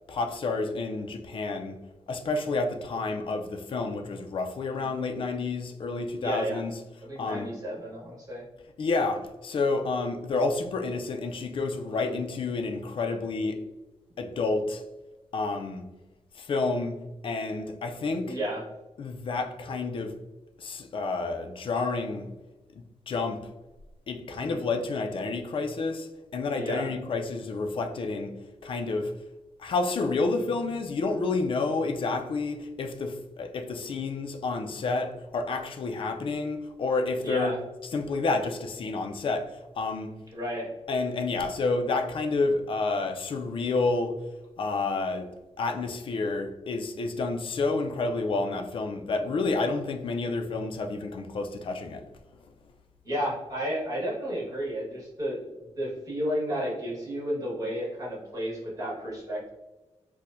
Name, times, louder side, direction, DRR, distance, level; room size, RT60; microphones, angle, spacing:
voice 1, 0.1-1.8 2.1-6.8 7.2-7.5 8.8-13.6 14.2-14.8 15.3-15.9 16.4-18.4 19.0-20.2 20.6-22.3 22.7-23.5 24.1-28.3 28.6-29.1 29.6-37.5 37.9-40.1 40.9-44.2 44.6-45.3 45.6-52.1, left 3 dB, 50° left, 0.3 m, -29 dB
voice 2, 6.2-6.6 7.0-8.4 11.9-12.2 18.3-18.6 24.4-24.7 26.5-26.9 37.2-37.6 40.3-40.7 53.0-55.5 55.8-59.5, equal, 30° right, 1.3 m, -32 dB
4.3 x 2.1 x 2.5 m
wide cardioid pair, 170°, 12 cm